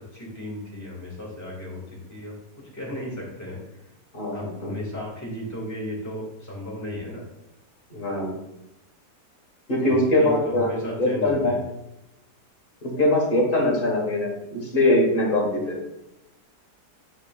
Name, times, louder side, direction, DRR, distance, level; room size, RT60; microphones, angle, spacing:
voice 1, 0.1-2.4 2.7-3.6 4.3-7.2 9.8-11.6, equal, 10° left, -4 dB, 1.8 m, -35 dB
voice 2, 4.1-4.7 7.9-8.3 9.7-10.7 11.0-11.6 12.8-15.8, left 1 dB, 30° left, -2 dB, 1.6 m, -22 dB
8.7 x 5.0 x 2.4 m, 0.89 s
omnidirectional pair, 1.8 m